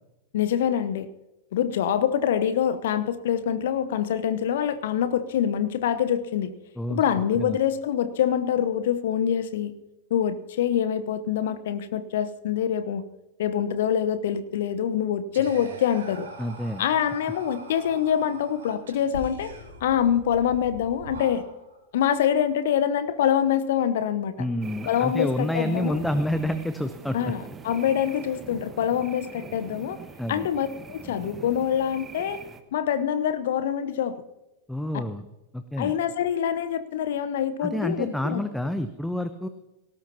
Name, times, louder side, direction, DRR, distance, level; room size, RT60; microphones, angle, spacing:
voice 1, 0.3-1.1 1.5-6.5 6.9-9.7 10.1-13.0 13.4-16.3 16.8-19.5 19.8-21.5 21.9-24.3 24.9-26.0 27.1-30.0 30.3-32.4 32.7-34.2 35.8-38.4, left 9 dB, 55° left, 13 dB, 0.9 m, -25 dB
Whispering, 15.3-21.8, right 2 dB, 65° right, 3.7 m, -43 dB
voice 2, 16.4-16.8 24.4-27.2 30.2-30.5 34.7-35.3 35.5-35.9 37.6-39.5, left 1 dB, 5° left, 10 dB, 0.8 m, -28 dB
sound 1, 24.6-32.6, right 5 dB, 20° right, 1.2 m, -42 dB
18.5 x 17.5 x 2.9 m, 0.97 s
figure-of-eight pair, 90°, 0 cm